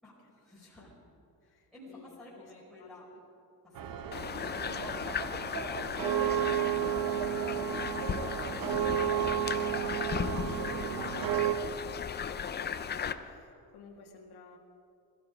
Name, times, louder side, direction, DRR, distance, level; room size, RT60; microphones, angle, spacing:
voice 1, 0.0-0.9 1.4-3.1 3.6-5.4, left 1 dB, ahead, -10 dB, 4.8 m, -54 dB
voice 2, 1.4-2.5 2.8-3.2 10.8-14.6, left 4 dB, 85° left, 0 dB, 1.8 m, -56 dB
sound 1, 3.8-11.5, right 10 dB, 65° right, 0.9 m, -32 dB
sound 2, 4.1-13.1, left 7 dB, 30° left, 0.5 m, -36 dB
21.0 x 13.5 x 5.0 m, 2.6 s
cardioid pair, 175°, 37 cm